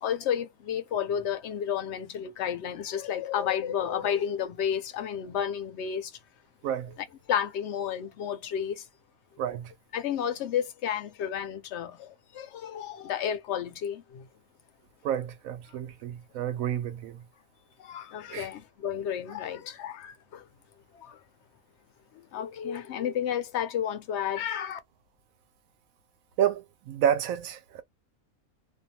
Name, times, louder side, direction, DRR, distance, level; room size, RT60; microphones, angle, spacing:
voice 1, 0.0-6.1 7.0-8.9 9.9-14.3 17.8-20.5 20.9-21.2 22.1-24.8, left 9 dB, 65° left, 0.8 m, -32 dB
voice 2, 6.6-6.9 9.4-9.7 15.0-17.2 18.3-18.5 26.4-27.8, right 10 dB, 75° right, 1.0 m, -29 dB
2.5 x 2.3 x 2.7 m
omnidirectional pair, 1.5 m